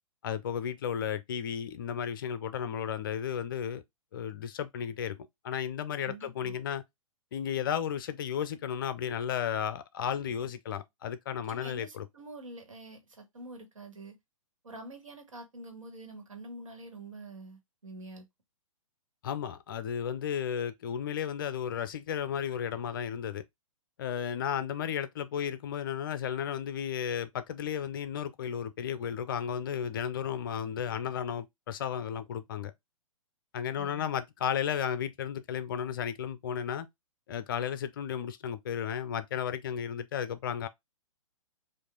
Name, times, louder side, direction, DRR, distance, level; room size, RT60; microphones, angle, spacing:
voice 1, 0.2-3.8 4.1-6.8 7.3-12.1 19.2-23.4 24.0-32.7 33.5-36.9 37.3-40.7, left 8 dB, 40° left, 0.5 m, -34 dB
voice 2, 6.0-6.5 11.5-14.2 14.6-18.3 33.8-34.1, right 2 dB, 70° right, 1.6 m, -46 dB
4.6 x 2.6 x 3.6 m
figure-of-eight pair, 120°, 17 cm